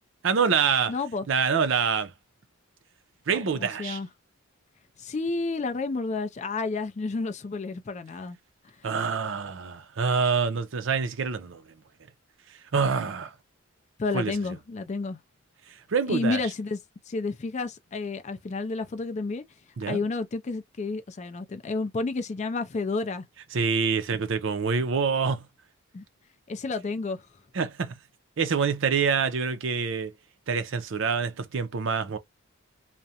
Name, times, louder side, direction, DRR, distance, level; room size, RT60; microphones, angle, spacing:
voice 1, 0.2-0.9 1.3-2.1 3.3-4.0 8.8-11.6 12.7-13.3 14.1-14.3 15.9-16.4 19.8-20.0 23.5-25.4 27.5-27.9 28.4-30.1 30.5-32.2, right 5 dB, 60° right, 0.5 m, -26 dB
voice 2, 0.9-1.3 3.3-4.1 5.0-8.4 14.0-15.2 16.1-16.8 17.1-19.4 19.9-23.2 25.9-26.0 26.5-27.2, left 3 dB, 35° left, 0.4 m, -30 dB
2.4 x 2.1 x 2.7 m
head